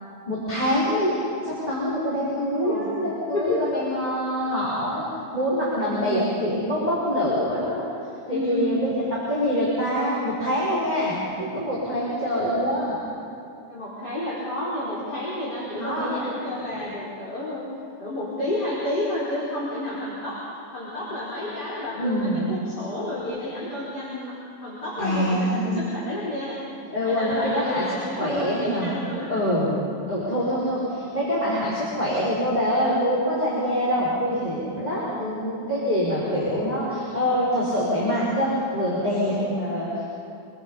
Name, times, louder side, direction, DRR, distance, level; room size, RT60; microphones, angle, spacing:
voice 1, 0.3-1.1 1.4-5.1 5.3-7.9 8.2-9.0 9.3-13.0 15.8-16.1 16.7-16.8 22.0-22.6 25.0-25.9 26.9-27.8 28.2-28.9 29.3-29.8 30.1-40.1, equal, 10° left, -8 dB, 5.0 m, -25 dB
voice 2, 2.6-2.9 3.3-3.6 5.8-6.2 8.3-8.7 13.7-17.6 18.0-20.4 20.7-24.3 24.6-26.6 27.0-29.3 33.7-34.0 34.9-35.3 39.2-39.5, left 1 dB, 30° left, -8 dB, 4.9 m, -31 dB
26.5 x 23.0 x 5.7 m, 2.6 s
omnidirectional pair, 3.8 m